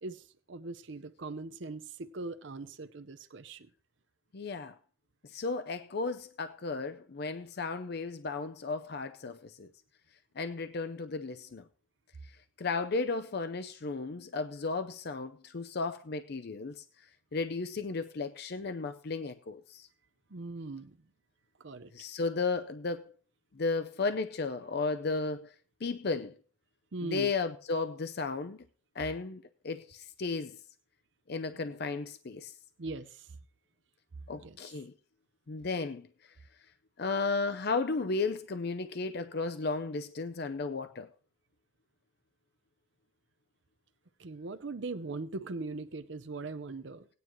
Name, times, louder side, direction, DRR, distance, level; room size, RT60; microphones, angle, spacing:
voice 1, 0.0-3.7 20.3-21.0 21.6-22.1 26.9-27.3 31.5-31.6 32.8-33.3 34.3-34.7 44.2-47.1, right 3 dB, 60° right, 0.7 m, -40 dB
voice 2, 4.3-4.8 5.3-9.7 10.4-11.6 12.6-16.8 17.3-19.9 21.9-23.1 23.6-25.5 25.8-26.3 27.0-28.6 29.0-30.6 31.3-32.5 34.3-34.9 35.5-36.1 37.0-41.1, left 4 dB, 50° left, 0.5 m, -34 dB
18.0 x 9.5 x 3.1 m
head